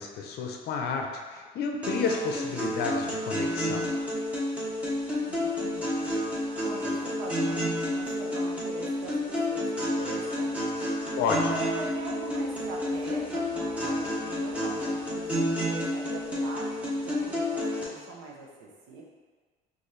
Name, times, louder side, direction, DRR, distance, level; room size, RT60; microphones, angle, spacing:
voice 1, 0.0-3.9 11.2-11.5, left 5 dB, 55° left, 2 dB, 0.5 m, -31 dB
sound 1, 1.8-17.8, left 1 dB, 5° right, 0.9 m, -30 dB
voice 2, 5.3-6.2 6.6-19.0, right 3 dB, 90° right, -2 dB, 0.7 m, -42 dB
4.0 x 2.5 x 3.2 m, 1.5 s
cardioid pair, 120°, 19 cm